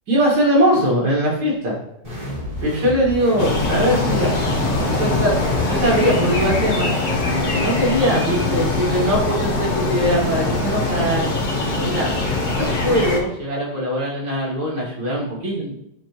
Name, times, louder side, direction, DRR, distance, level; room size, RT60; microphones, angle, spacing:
voice 1, 0.1-1.8 2.6-4.3 4.8-11.3 11.8-12.1 12.5-15.7, equal, 70° right, -6 dB, 2.6 m, -21 dB
sound 1, 2.0-6.4, equal, 25° right, 2.5 m, -31 dB
sound 2, 3.4-13.2, left 2 dB, 75° left, 0.4 m, -22 dB
8.8 x 4.9 x 3.0 m, 0.81 s
omnidirectional pair, 2.2 m